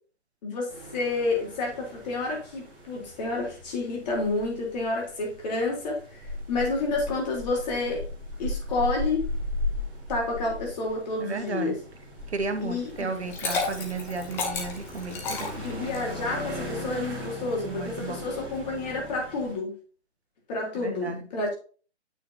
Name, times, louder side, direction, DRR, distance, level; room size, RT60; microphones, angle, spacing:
voice 1, 0.4-8.1 8.4-9.3 10.1-11.8 12.6-13.1 15.6-19.8 20.5-21.5, left 3 dB, 35° left, 3.9 m, -29 dB
sound 1, 0.7-19.6, left 1 dB, 15° right, 3.2 m, -37 dB
voice 2, 11.2-11.7 12.3-15.8 17.7-18.2 20.8-21.2, right 4 dB, 70° right, 1.5 m, -33 dB
Liquid, 13.1-16.2, left 4 dB, 5° left, 0.5 m, -32 dB
9.1 x 5.8 x 2.9 m
figure-of-eight pair, 135°, 34 cm